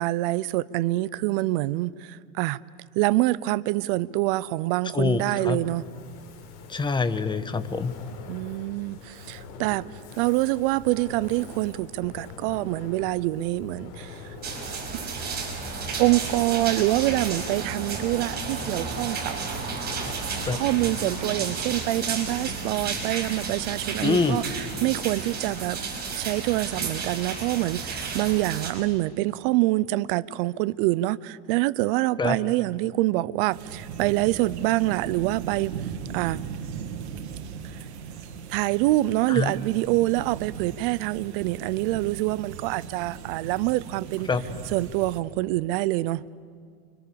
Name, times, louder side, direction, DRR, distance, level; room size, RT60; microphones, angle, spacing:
voice 1, 0.0-2.6 2.9-5.9 8.3-9.9 10.1-14.2 16.0-19.4 20.5-25.8 26.1-35.8 36.1-36.4 38.5-44.3 44.7-46.2, right 18 dB, 55° right, 0.8 m, -26 dB
voice 2, 4.9-5.6 6.7-7.9 20.5-20.6 24.0-24.4 32.2-32.4 39.3-39.5 44.3-44.4, left 4 dB, 15° left, 1.4 m, -25 dB
Fire, 5.2-23.2, left 4 dB, 50° left, 6.7 m, -44 dB
sound 1, 14.4-28.7, right 5 dB, 30° right, 5.7 m, -32 dB
sound 2, 33.5-45.2, right 7 dB, 80° right, 2.7 m, -38 dB
30.0 x 24.5 x 7.0 m
supercardioid pair, 125°, 33 cm